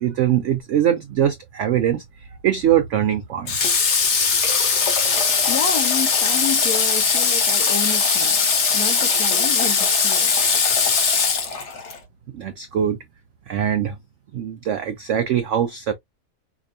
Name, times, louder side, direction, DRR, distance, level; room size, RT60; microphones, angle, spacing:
voice 1, 0.0-2.0 2.4-3.6 12.3-13.0 13.5-14.0 14.3-15.9, right 10 dB, 75° right, 0.6 m, -22 dB
Water / Water tap faucet, 3.5-12.0, left 5 dB, 50° left, 1.1 m, -20 dB
voice 2, 5.5-8.4 8.7-10.3, left 7 dB, 65° left, 1.3 m, -29 dB
5.0 x 2.3 x 2.5 m
omnidirectional pair, 1.8 m